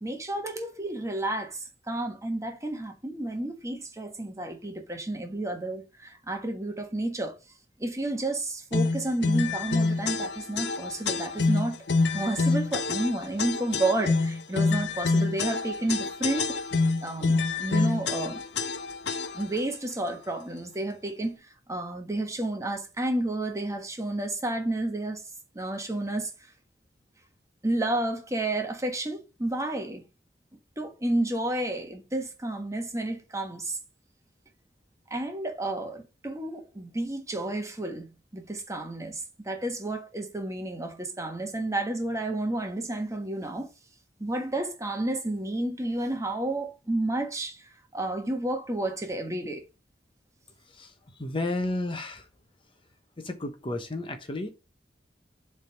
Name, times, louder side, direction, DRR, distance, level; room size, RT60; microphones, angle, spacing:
voice 1, 0.0-7.4 7.8-11.8 12.1-16.6 17.0-18.4 19.3-21.4 21.7-25.2 25.5-26.3 27.6-30.0 30.8-33.8 35.1-43.7 44.2-47.7 47.9-49.6, right 1 dB, 20° right, 1.4 m, -31 dB
sound 1, 8.7-19.6, left 3 dB, 75° left, 0.8 m, -27 dB
voice 2, 51.2-52.3 53.2-54.5, left 2 dB, 30° left, 1.0 m, -32 dB
7.5 x 3.6 x 6.4 m
head